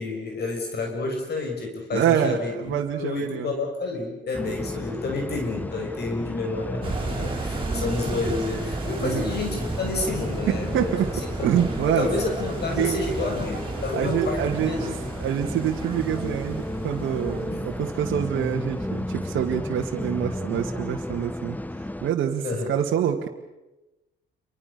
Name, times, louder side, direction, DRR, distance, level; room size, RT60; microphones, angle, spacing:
voice 1, 0.0-10.9 11.4-11.6 11.9-15.0 17.5-17.6 22.4-22.7, left 3 dB, 55° left, 3 dB, 6.2 m, -30 dB
voice 2, 1.9-3.5 7.7-7.8 9.0-9.2 10.5-11.1 11.4-12.1 12.8-13.0 13.9-14.9 15.2-21.6 22.0-23.3, right 9 dB, 75° right, -1 dB, 2.3 m, -26 dB
sound 1, 4.3-22.1, left 1 dB, 10° left, 1.0 m, -34 dB
sound 2, 6.8-19.7, right 3 dB, 25° right, 7.0 m, -34 dB
29.0 x 24.5 x 6.9 m, 1.0 s
cardioid pair, 90°, 20 cm